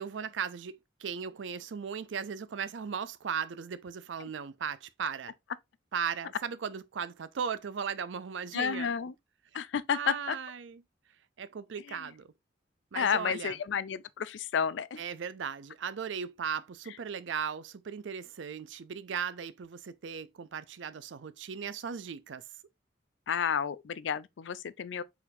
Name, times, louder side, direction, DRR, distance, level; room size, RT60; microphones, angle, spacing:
voice 1, 0.0-5.3 5.9-8.9 9.9-10.8 11.4-12.3 12.9-13.5 15.0-22.4, right 7 dB, 85° right, 0.5 m, -37 dB
voice 2, 8.5-9.1 9.5-10.4 11.9-12.1 12.9-15.0 23.3-25.0, left 7 dB, 75° left, 0.4 m, -31 dB
4.3 x 4.0 x 2.6 m
head